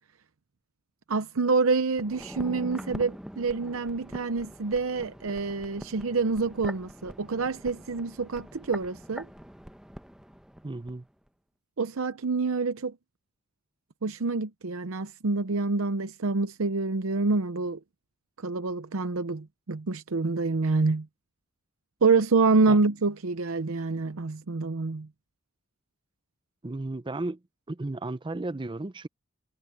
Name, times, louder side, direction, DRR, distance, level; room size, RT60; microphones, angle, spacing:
voice 1, 1.1-9.3 11.8-12.9 14.0-17.8 18.4-21.1 22.0-25.1, right 4 dB, 70° right, 0.7 m, -27 dB
sound 1, 1.9-11.0 11.3-11.4, equal, 5° right, 1.0 m, -43 dB
voice 2, 10.6-11.1 22.7-22.8 26.6-27.4 27.7-29.1, right 2 dB, 25° right, 0.6 m, -34 dB
head